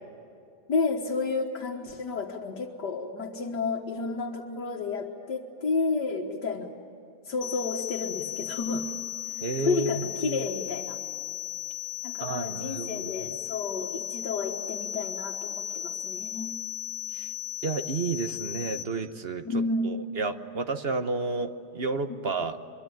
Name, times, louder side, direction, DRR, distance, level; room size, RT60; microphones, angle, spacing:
voice 1, 0.7-6.7 7.3-8.9 9.6-11.0 12.0-16.5 19.5-20.0, left 3 dB, 85° left, -2 dB, 2.2 m, -31 dB
sound 1, 7.4-18.8, left 11 dB, 45° left, 2.2 m, -36 dB
voice 2, 9.4-10.4 12.2-13.1 17.1-17.3 17.6-19.5 19.8-22.6, right 3 dB, 45° right, 9 dB, 1.1 m, -31 dB
23.5 x 23.5 x 8.9 m, 2.5 s
omnidirectional pair, 1.8 m